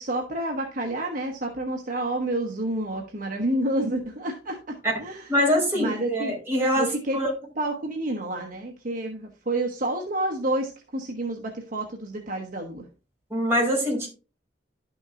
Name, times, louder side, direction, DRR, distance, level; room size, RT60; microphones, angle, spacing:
voice 1, 0.0-5.2 5.7-6.4 6.8-7.2 7.6-12.8, right 1 dB, 50° right, 1 dB, 1.0 m, -29 dB
voice 2, 5.3-7.3 13.3-14.1, equal, 15° right, -3 dB, 4.3 m, -24 dB
11.5 x 6.1 x 2.5 m, 0.33 s
head